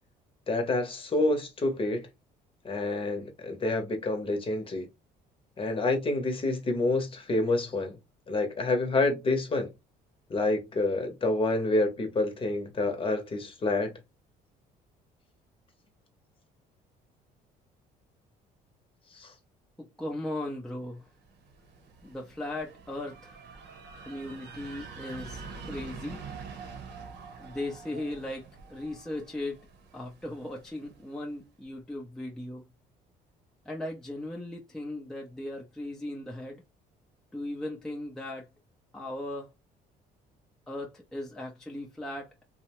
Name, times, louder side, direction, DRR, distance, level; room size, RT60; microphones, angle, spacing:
voice 1, 0.5-2.1 2.6-4.9 5.6-8.0 8.3-9.7 10.3-13.9 19.1-19.3, left 2 dB, 30° left, 0.8 m, -28 dB
voice 2, 19.8-21.1 22.0-23.4 24.0-26.2 27.4-29.7 29.9-32.7 33.7-36.6 37.3-38.5 38.9-39.5 40.7-42.4, left 1 dB, 5° left, 0.5 m, -37 dB
sound 1, 21.2-31.0, right 5 dB, 80° right, 0.8 m, -46 dB
2.7 x 2.1 x 2.9 m
cardioid pair, 110°, 17 cm